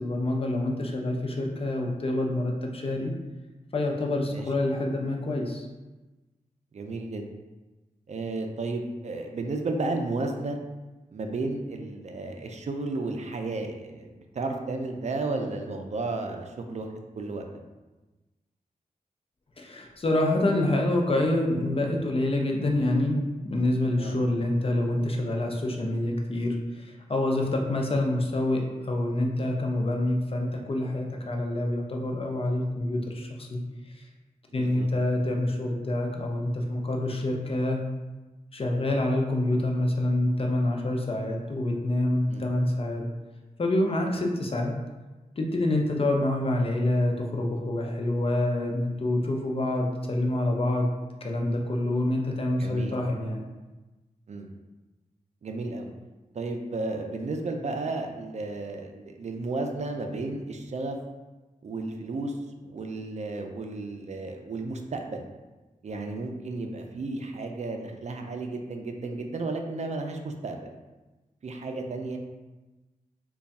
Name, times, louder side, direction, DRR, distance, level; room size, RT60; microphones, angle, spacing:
voice 1, 0.0-3.1 3.7-5.7 19.6-33.6 33.9-34.0 34.5-37.8 38.5-43.0 43.6-44.8 45.4-50.9 51.2-53.4, left 1 dB, 40° left, 1 dB, 0.6 m, -27 dB
voice 2, 4.3-4.7 6.7-7.3 8.1-10.6 11.1-16.9 17.2-17.5 24.0-24.2 34.5-34.9 42.3-42.5 52.6-53.0 54.3-54.5 55.4-55.9 56.3-61.0 61.6-62.4 62.6-65.2 65.8-70.7 71.4-72.2, right 3 dB, 55° right, 4 dB, 0.4 m, -33 dB
3.3 x 2.3 x 4.0 m, 1.2 s
wide cardioid pair, 75°, 14 cm